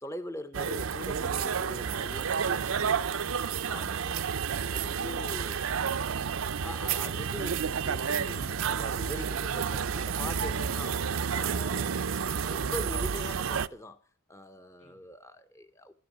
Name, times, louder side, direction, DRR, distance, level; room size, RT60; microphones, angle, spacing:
voice 1, 0.0-2.6 3.7-4.2 4.7-5.7 6.6-12.0 12.4-14.0 14.3-15.9, left 1 dB, 15° left, 0.7 m, -42 dB
sound 1, 0.5-13.7, right 6 dB, 70° right, 0.6 m, -30 dB
voice 2, 2.1-3.8 5.8-6.3 14.8-15.1, left 3 dB, 90° left, 5.0 m, -56 dB
13.0 x 12.0 x 6.8 m
head